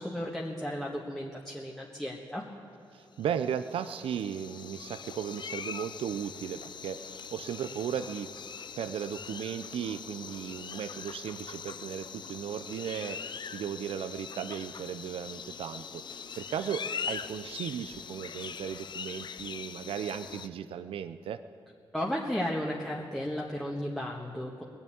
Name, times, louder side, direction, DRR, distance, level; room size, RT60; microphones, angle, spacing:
voice 1, 0.0-2.4 21.9-24.6, equal, 5° left, -4 dB, 1.5 m, -34 dB
voice 2, 2.9-8.3 8.8-21.4, right 8 dB, 80° right, 11 dB, 0.5 m, -36 dB
sound 1, 3.2-20.5, left 6 dB, 55° left, 0.5 m, -42 dB
20.0 x 7.2 x 8.7 m, 2.5 s
cardioid pair, 60°, 9 cm